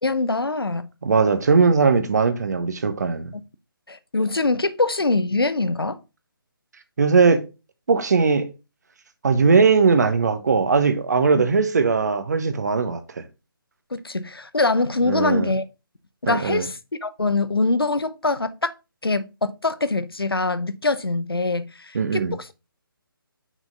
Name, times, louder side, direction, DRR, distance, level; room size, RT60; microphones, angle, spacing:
voice 1, 0.0-0.9 3.9-6.0 11.4-11.5 13.9-15.6 16.2-18.7 19.0-22.5, left 3 dB, 80° left, 0.7 m, -23 dB
voice 2, 1.0-3.3 7.0-7.4 7.9-8.5 9.2-13.0 15.1-15.5 16.3-16.7 21.9-22.4, right 4 dB, 50° right, 1.0 m, -19 dB
6.1 x 4.4 x 3.8 m
figure-of-eight pair, 145°, 12 cm